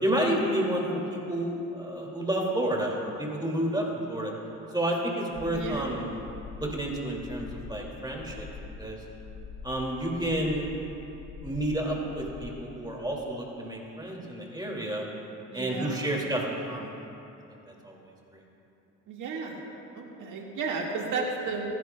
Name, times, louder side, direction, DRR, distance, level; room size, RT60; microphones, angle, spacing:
voice 1, 0.0-4.3 4.7-6.1 6.6-8.5 8.8-9.0 9.6-10.7 11.4-15.0 15.5-16.9 17.5-17.6 17.8-18.0, right 1 dB, 15° right, -1 dB, 2.4 m, -30 dB
sound 1, 5.3-12.5, left 5 dB, 55° left, 2.2 m, -44 dB
voice 2, 5.5-6.0 15.5-16.0 19.1-19.6 19.9-21.6, right 4 dB, 85° right, -1 dB, 2.0 m, -33 dB
26.5 x 11.0 x 2.3 m, 3.0 s
cardioid pair, 90°, 30 cm